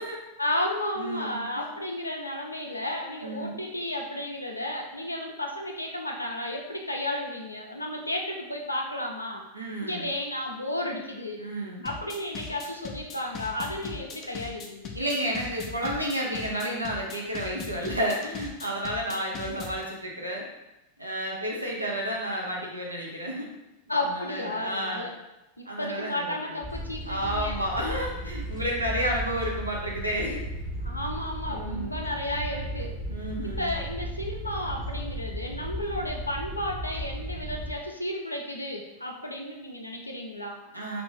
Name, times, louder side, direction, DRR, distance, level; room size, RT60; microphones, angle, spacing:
voice 1, 0.4-9.4 9.8-11.4 11.8-14.9 23.9-25.1 25.6-27.6 30.8-32.9 33.4-40.6, left 1 dB, 85° left, 1 dB, 0.5 m, -33 dB
voice 2, 1.0-1.6 3.2-3.6 9.5-10.1 11.4-11.8 14.9-20.5 21.0-23.5 24.0-25.0 25.7-26.6 27.1-30.4 31.5-31.9 33.1-33.7 40.7-41.0, equal, 85° right, -3 dB, 0.7 m, -31 dB
sound 1, 11.9-19.8, left 5 dB, 30° left, 0.5 m, -39 dB
sound 2, 26.6-37.7, equal, 20° right, 0.9 m, -35 dB
3.0 x 2.5 x 3.4 m, 0.99 s
figure-of-eight pair, 90°, 0 cm